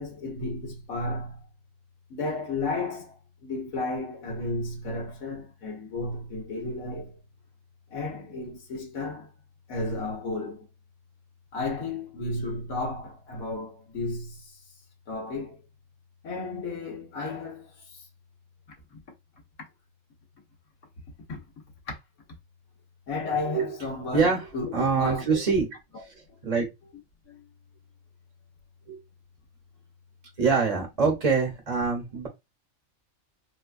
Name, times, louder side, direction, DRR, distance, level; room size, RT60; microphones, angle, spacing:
voice 1, 0.0-1.5 2.1-7.2 7.9-9.3 9.7-10.7 11.5-14.6 15.1-15.6 16.2-18.1 18.9-19.0 21.3-21.4 21.9-22.0 23.1-25.4 25.9-26.0 27.3-27.4, left 2 dB, 80° left, 1.6 m, -33 dB
voice 2, 24.1-24.4 24.7-25.7 26.4-26.7 28.9-29.0 30.4-32.3, right 5 dB, 35° right, 0.8 m, -24 dB
4.3 x 2.2 x 2.4 m
omnidirectional pair, 1.5 m